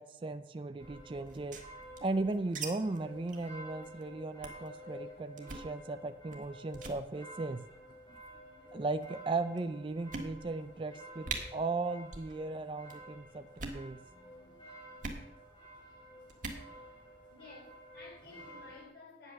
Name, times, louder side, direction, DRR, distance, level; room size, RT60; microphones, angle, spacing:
voice 1, 0.0-1.6 2.0-7.6 8.7-14.0, right 3 dB, 30° right, 10 dB, 0.4 m, -37 dB
sound 1, 0.8-18.9, equal, 25° left, 3.5 m, -52 dB
sound 2, 1.3-2.7 2.9-3.0 3.3-3.5 3.8-4.0 4.4-4.7 5.4-5.7 6.3-6.5 6.7-7.0 7.9-8.3 9.0-9.1 9.6-9.7 10.1-10.7 10.9-11.0 11.2-11.4 12.0-12.3 12.6-13.0 13.5-13.8 15.0-15.2 16.3-16.6, right 4 dB, 45° right, 1.6 m, -41 dB
voice 2, 13.1-13.5 14.1-14.3 17.3-19.3, left 3 dB, 60° left, -2 dB, 4.7 m, -54 dB
9.9 x 8.0 x 6.4 m, 0.89 s
head